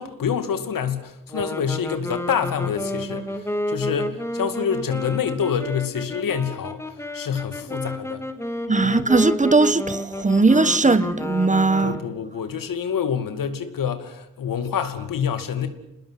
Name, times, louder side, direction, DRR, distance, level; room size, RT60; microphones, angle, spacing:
voice 1, 0.0-8.2 8.8-9.0 11.8-15.7, left 7 dB, 80° left, 2.6 m, -27 dB
sound 1, 1.3-12.3, left 1 dB, 10° left, 3.5 m, -31 dB
voice 2, 8.7-12.0, right 3 dB, 20° right, 1.3 m, -19 dB
27.5 x 20.0 x 8.3 m
cardioid pair, 85°, 33 cm